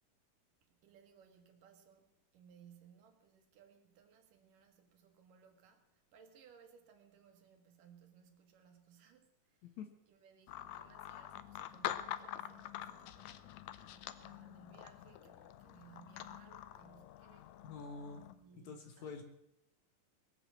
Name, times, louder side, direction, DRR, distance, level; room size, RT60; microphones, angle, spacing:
voice 1, 0.6-9.8 10.1-17.6 18.3-19.2, right 7 dB, 70° right, 3.0 m, -63 dB
sound 1, 10.5-18.4, left 12 dB, 80° left, 1.6 m, -46 dB
voice 2, 17.6-18.2 18.5-19.2, left 4 dB, 60° left, 2.3 m, -47 dB
21.0 x 7.8 x 7.4 m
omnidirectional pair, 4.1 m